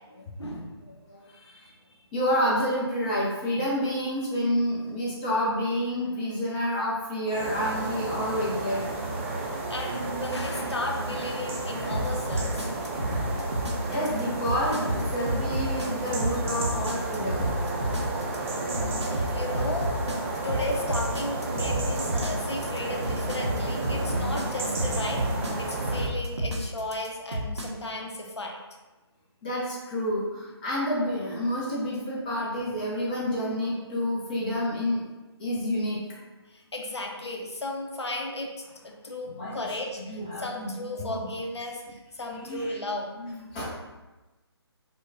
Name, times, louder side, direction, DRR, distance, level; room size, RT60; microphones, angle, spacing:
voice 1, 0.4-0.9 1.3-1.8 9.7-12.7 18.4-20.0 20.4-28.6 36.5-43.1, left 1 dB, 75° left, 1 dB, 0.6 m, -35 dB
voice 2, 2.1-8.8 13.9-17.5 18.0-18.1 21.9-22.0 25.9-26.0 29.4-35.0 35.4-36.0 39.4-39.6 40.1-41.3 42.2-42.7 43.2-43.7, equal, 20° left, -6 dB, 0.5 m, -29 dB
sound 1, 7.3-26.1, right 2 dB, 30° right, 0.5 m, -32 dB
sound 2, 11.9-27.7, right 1 dB, 85° right, 0.7 m, -30 dB
4.6 x 2.1 x 2.7 m, 1.1 s
figure-of-eight pair, 145°, 14 cm